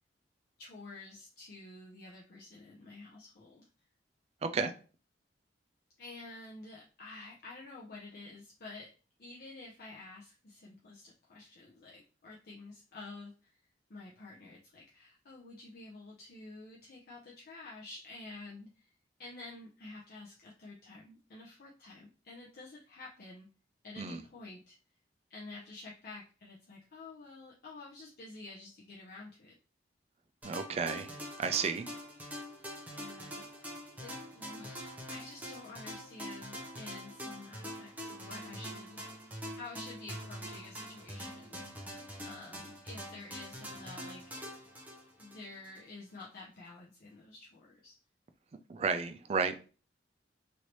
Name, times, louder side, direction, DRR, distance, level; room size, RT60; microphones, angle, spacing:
voice 1, 0.6-3.7 6.0-8.9 9.2-13.5 13.9-18.9 19.2-23.5 23.8-24.8 25.3-29.5 32.9-39.2 39.5-41.8 42.2-44.2 45.2-47.9, left 2 dB, 55° left, -5 dB, 0.6 m, -50 dB
voice 2, 4.4-4.7 24.0-24.2 30.4-31.1 31.4-31.9 48.7-49.5, right 5 dB, 35° right, 9 dB, 0.3 m, -32 dB
sound 1, 30.4-45.8, equal, 10° right, 0.7 m, -45 dB
3.2 x 2.7 x 2.9 m, 0.37 s
head